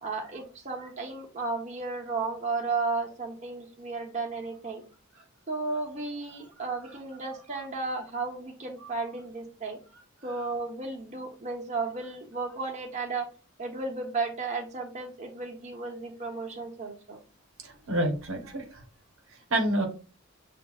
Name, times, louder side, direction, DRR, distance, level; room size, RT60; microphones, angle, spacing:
voice 1, 0.0-4.8 5.5-9.8 10.2-13.2 13.6-17.2, right 3 dB, 35° right, 0 dB, 0.9 m, -34 dB
voice 2, 17.6-18.8 19.5-19.9, right 1 dB, 75° right, 4 dB, 1.0 m, -28 dB
7.1 x 2.6 x 2.4 m, 0.34 s
head